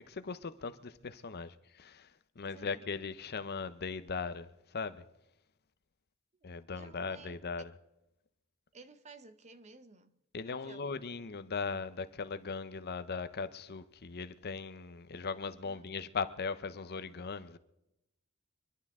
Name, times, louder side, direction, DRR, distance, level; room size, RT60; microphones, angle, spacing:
voice 1, 0.0-2.1 2.4-5.0 6.4-7.7 10.3-17.6, left 5 dB, 45° left, 0.7 m, -39 dB
voice 2, 2.5-2.9 6.4-6.5 6.7-7.4 8.7-10.2 10.5-11.0 15.6-15.9, right 3 dB, 30° right, 0.8 m, -55 dB
25.0 x 11.5 x 3.6 m
head